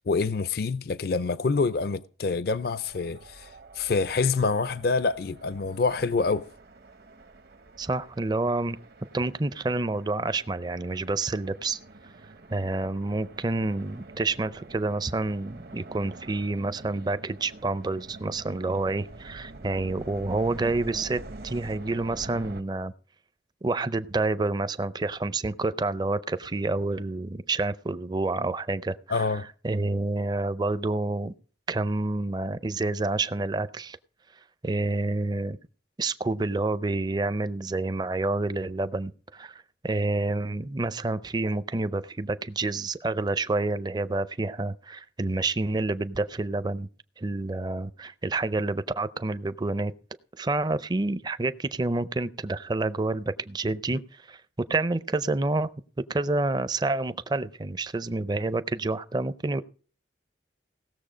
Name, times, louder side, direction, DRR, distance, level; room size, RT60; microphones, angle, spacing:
voice 1, 0.0-3.5 3.7-6.5 29.1-29.5 53.9-54.0, left 4 dB, 55° left, 0.4 m, -26 dB
sound 1, 2.8-22.6, right 2 dB, 60° right, 0.8 m, -46 dB
voice 2, 7.8-8.8 9.1-11.8 12.5-22.9 23.6-29.3 29.6-31.3 31.7-34.0 34.6-35.6 36.0-46.9 47.2-49.9 50.4-54.4 54.7-55.7 56.1-59.6, right 2 dB, 25° right, 0.4 m, -28 dB
17.5 x 7.0 x 5.0 m
head